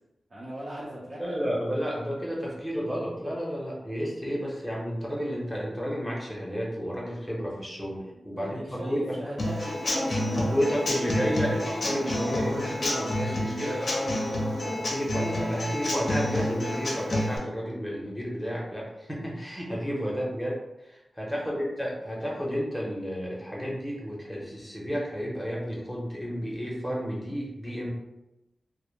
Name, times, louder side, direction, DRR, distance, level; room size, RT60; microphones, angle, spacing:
voice 1, 0.3-1.4 8.1-10.8 14.5-14.8 20.0-20.3 21.3-21.6, equal, 45° right, -7 dB, 0.5 m, -40 dB
voice 2, 1.2-9.2 10.4-13.8 14.8-27.9, equal, ahead, -4 dB, 0.7 m, -31 dB
Human voice / Acoustic guitar / Drum, 9.4-17.4, left 1 dB, 55° left, 0.5 m, -29 dB
2.1 x 2.0 x 3.0 m, 0.94 s
wide cardioid pair, 100°, 0 cm